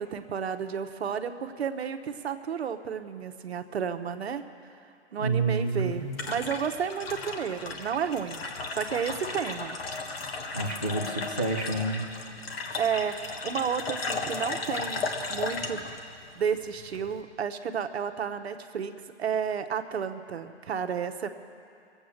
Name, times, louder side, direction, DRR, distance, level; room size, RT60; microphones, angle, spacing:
voice 1, 0.0-4.4 5.1-8.4 8.7-9.8 12.7-15.9 16.3-21.3, right 7 dB, 65° right, 8 dB, 1.0 m, -32 dB
voice 2, 5.2-6.1 10.5-12.1, right 3 dB, 20° left, -1 dB, 0.3 m, -29 dB
sound 1, 5.5-17.2, left 3 dB, 55° left, 1.5 m, -35 dB
22.5 x 8.2 x 6.4 m, 2.4 s
hypercardioid pair, 165°, 34 cm